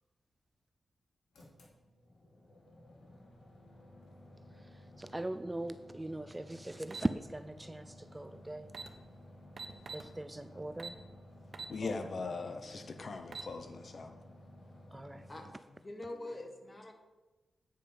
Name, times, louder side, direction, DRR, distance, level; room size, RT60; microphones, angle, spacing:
sound 1, 1.3-15.5, left 1 dB, 85° left, 2.5 m, -55 dB
voice 1, 4.5-8.7 9.9-11.0 11.8-11.9 14.9-15.3, right 1 dB, 15° right, 0.4 m, -40 dB
sound 2, 6.9-7.1 8.3-8.4 8.7-8.9 9.6-10.1 10.8-11.0 11.5-11.8 12.2-12.3 13.1-13.5, right 4 dB, 60° right, 1.1 m, -43 dB
voice 2, 11.7-14.1, left 4 dB, 55° left, 0.7 m, -40 dB
voice 3, 15.3-16.9, left 1 dB, 25° left, 1.7 m, -45 dB
9.0 x 5.1 x 6.7 m
cardioid pair, 85°, 0 cm